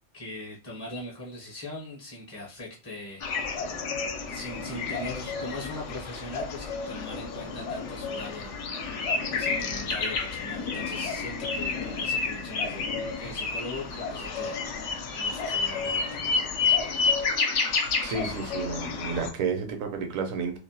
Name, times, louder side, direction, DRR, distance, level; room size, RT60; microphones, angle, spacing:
voice 1, 0.1-3.3 4.3-9.0 9.3-12.9 13.2-16.4, left 2 dB, 30° left, -4 dB, 0.5 m, -40 dB
sound 1, 3.2-19.3, left 4 dB, 75° left, 0.9 m, -30 dB
voice 2, 18.0-20.6, right 5 dB, 85° right, 5 dB, 1.0 m, -31 dB
2.5 x 2.1 x 2.7 m, 0.35 s
omnidirectional pair, 1.4 m